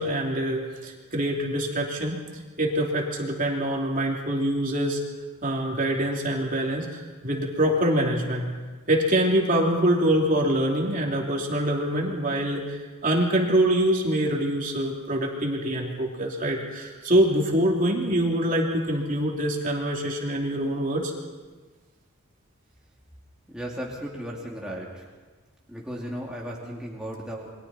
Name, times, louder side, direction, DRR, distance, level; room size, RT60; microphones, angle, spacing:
voice 1, 0.0-2.2 2.6-5.0 5.4-8.5 8.9-21.1, right 1 dB, 35° right, -1 dB, 3.1 m, -25 dB
voice 2, 23.5-25.0 25.7-27.6, equal, 5° right, -4 dB, 2.6 m, -35 dB
29.0 x 22.5 x 4.3 m, 1.3 s
head